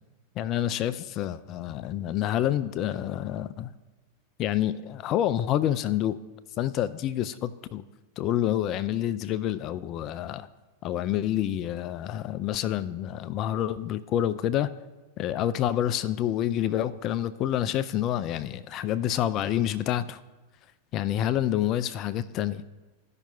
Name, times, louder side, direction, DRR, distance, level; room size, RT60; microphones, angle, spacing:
voice 1, 0.4-3.7 4.4-6.2 6.6-7.8 8.2-10.5 10.8-14.7 15.2-20.2 20.9-22.6, left 11 dB, 35° left, 15 dB, 0.3 m, -28 dB
14.5 x 5.7 x 2.3 m, 1.2 s
figure-of-eight pair, 90°, 0 cm